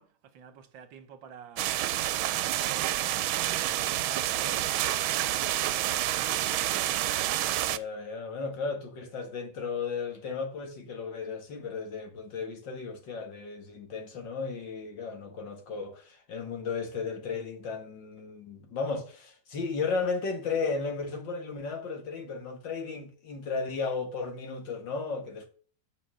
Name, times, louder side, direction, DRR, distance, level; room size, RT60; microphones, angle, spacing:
voice 1, 0.0-1.8 2.2-4.8 5.2-6.4, right 7 dB, 70° right, 1.6 m, -50 dB
sound 1, 1.6-7.8, right 13 dB, 85° right, 1.4 m, -28 dB
voice 2, 4.3-4.6 7.6-25.5, left 4 dB, 65° left, 2.3 m, -35 dB
8.9 x 5.4 x 6.3 m
omnidirectional pair, 2.2 m